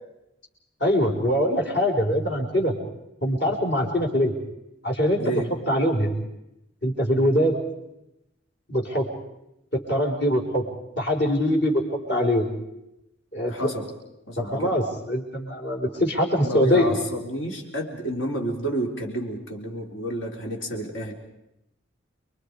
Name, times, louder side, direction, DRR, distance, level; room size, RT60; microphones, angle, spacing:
voice 1, 0.8-2.7 3.2-4.3 4.8-5.4 5.7-6.1 6.8-7.6 8.7-9.1 9.7-10.7 11.0-12.5 13.3-13.7 14.3-16.9, equal, 60° left, 0 dB, 5.1 m, -23 dB
voice 2, 5.2-5.5 13.5-13.9 14.3-14.8 16.4-21.1, right 1 dB, 80° left, 2 dB, 4.1 m, -30 dB
29.5 x 23.5 x 5.1 m, 0.87 s
head